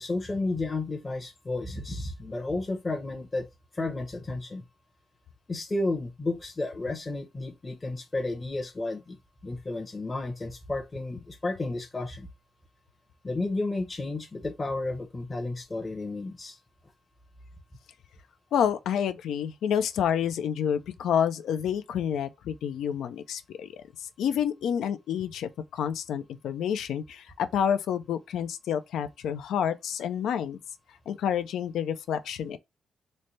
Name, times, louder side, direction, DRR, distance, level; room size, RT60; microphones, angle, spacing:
voice 1, 0.0-3.5 3.7-4.7 5.5-9.2 9.4-12.3 13.2-16.6, left 2 dB, 25° left, 0.7 m, -32 dB
voice 2, 18.5-30.6 31.1-32.6, left 8 dB, 80° left, 0.4 m, -29 dB
3.2 x 2.2 x 3.9 m
cardioid pair, 110°, 0 cm